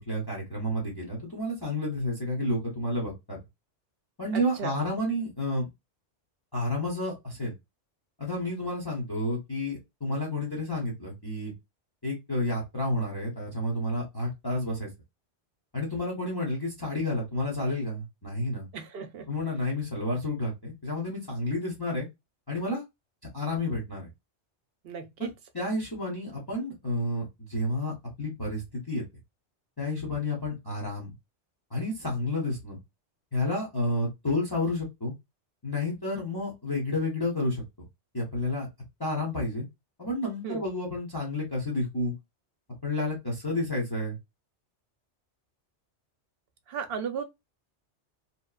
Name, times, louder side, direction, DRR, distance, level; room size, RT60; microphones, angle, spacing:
voice 1, 0.1-3.4 4.2-5.7 6.5-7.5 8.2-11.5 12.0-14.9 15.7-18.7 19.3-22.1 22.5-22.8 23.3-24.1 25.5-29.0 29.8-31.1 31.7-32.8 33.3-35.1 35.6-37.6 38.1-38.7 39.0-39.6 40.0-42.1 42.8-44.2, left 1 dB, 20° left, 0.9 m, -30 dB
voice 2, 4.3-4.8 18.7-19.3 24.8-25.3 40.4-40.6 46.7-47.2, right 6 dB, 65° right, 0.8 m, -35 dB
2.9 x 2.2 x 2.2 m
omnidirectional pair, 1.2 m